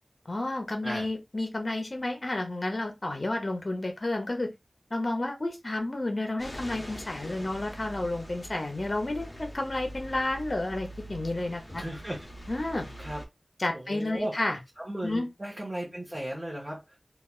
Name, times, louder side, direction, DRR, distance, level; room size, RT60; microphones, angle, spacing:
voice 1, 0.3-4.5 4.9-11.8 12.5-12.9 13.6-14.6 15.0-15.3, left 2 dB, 50° left, 0.8 m, -31 dB
sound 1, 6.4-13.2, equal, 25° left, 1.0 m, -43 dB
voice 2, 11.7-12.3 13.0-13.2 13.7-14.4 14.8-17.0, right 1 dB, 35° right, 0.9 m, -36 dB
3.3 x 2.4 x 2.4 m
wide cardioid pair, 55°, 0 cm